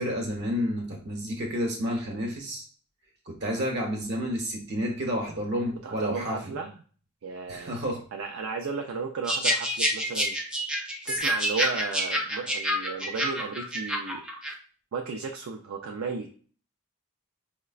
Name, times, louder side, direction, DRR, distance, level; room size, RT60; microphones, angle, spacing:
voice 1, 0.0-2.6 3.3-6.6 7.5-8.0, equal, 50° right, 2 dB, 1.0 m, -30 dB
voice 2, 5.8-6.8 7.2-7.8 8.1-10.4 11.0-14.2 14.9-16.4, right 4 dB, 70° right, 3 dB, 0.4 m, -34 dB
sound 1, 9.3-14.5, equal, 5° right, 0.4 m, -28 dB
4.8 x 2.1 x 2.3 m, 0.42 s
head